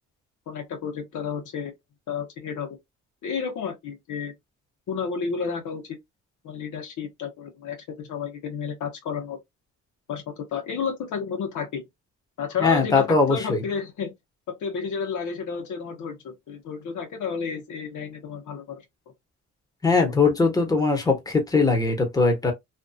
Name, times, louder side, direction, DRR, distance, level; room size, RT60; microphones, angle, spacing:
voice 1, 0.5-1.7 2.1-2.7 3.2-4.3 4.9-5.8 6.4-9.4 10.1-11.8 12.4-14.1 14.5-18.8 20.0-20.1, left 6 dB, 75° left, 1.1 m, -31 dB
voice 2, 12.6-13.6 19.8-22.5, left 4 dB, 10° left, 1.1 m, -21 dB
2.8 x 2.5 x 2.3 m
cardioid pair, 90°, 30 cm